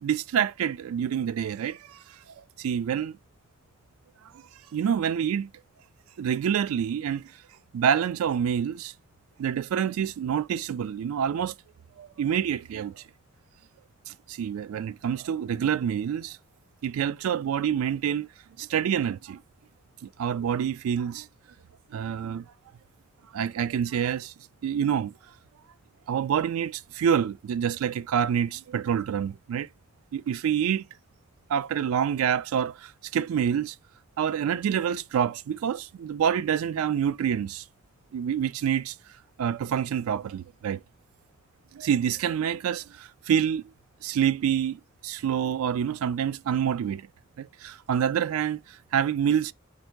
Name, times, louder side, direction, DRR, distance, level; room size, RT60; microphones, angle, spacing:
voice 1, 0.0-2.0 2.6-3.2 4.7-5.5 6.2-7.2 7.7-8.9 9.4-11.5 12.0-12.9 14.1-16.4 16.8-18.3 18.6-19.4 20.2-21.3 21.9-22.4 23.3-24.3 24.6-25.1 26.1-29.7 30.1-30.8 31.5-33.7 34.2-37.6 38.1-38.9 39.4-40.8 41.7-43.6 44.0-47.0 47.4-48.6 48.9-49.5, right 8 dB, 80° right, 0.3 m, -27 dB
4.4 x 2.6 x 4.5 m
head